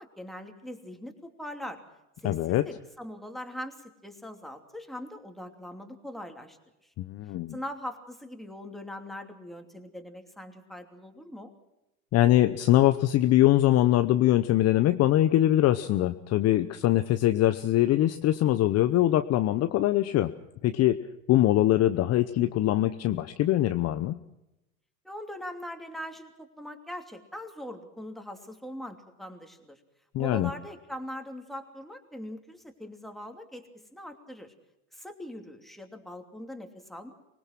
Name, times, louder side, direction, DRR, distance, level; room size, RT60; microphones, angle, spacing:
voice 1, 0.0-1.8 2.2-6.6 7.5-11.5 25.0-29.8 30.2-34.5 34.9-37.1, left 1 dB, ahead, 4 dB, 2.9 m, -41 dB
voice 2, 2.2-2.6 7.0-7.6 12.1-20.3 20.6-21.0 21.3-24.2 30.1-30.5, left 14 dB, 35° left, 10 dB, 0.9 m, -23 dB
24.5 x 20.0 x 6.1 m, 0.93 s
hypercardioid pair, 105°, 43 cm